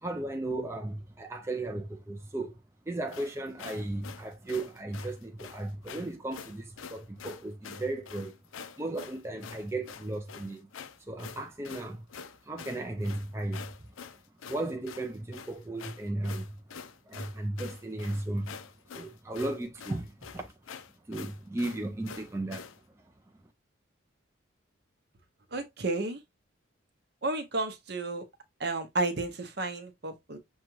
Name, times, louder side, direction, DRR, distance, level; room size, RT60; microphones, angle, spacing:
voice 1, 0.0-2.6 2.9-8.3 8.8-10.7 11.1-12.0 12.4-13.7 14.5-16.5 17.1-18.6 18.9-20.5 21.1-22.7, right 2 dB, 15° right, 0.4 m, -35 dB
sound 1, 3.1-22.8, left 6 dB, 85° left, 0.5 m, -46 dB
voice 2, 25.5-26.2 27.2-28.2 28.6-30.4, right 2 dB, 55° right, 0.7 m, -32 dB
6.3 x 2.3 x 3.0 m
head